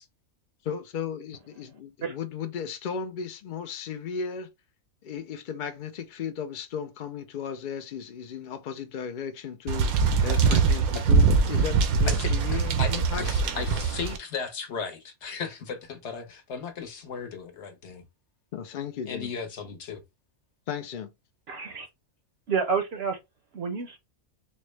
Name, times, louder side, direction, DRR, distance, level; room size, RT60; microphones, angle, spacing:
voice 1, 0.6-4.5 5.0-13.3 18.5-19.3 20.7-21.1, left 7 dB, 75° left, 0.4 m, -35 dB
sound 1, 9.7-14.2, right 4 dB, 85° right, 1.1 m, -23 dB
voice 2, 12.1-18.0 19.1-20.0, left 6 dB, 55° left, 1.0 m, -36 dB
voice 3, 21.5-21.9 22.5-23.2 23.5-24.0, right 5 dB, 60° right, 0.7 m, -29 dB
4.2 x 2.1 x 3.1 m
omnidirectional pair, 1.5 m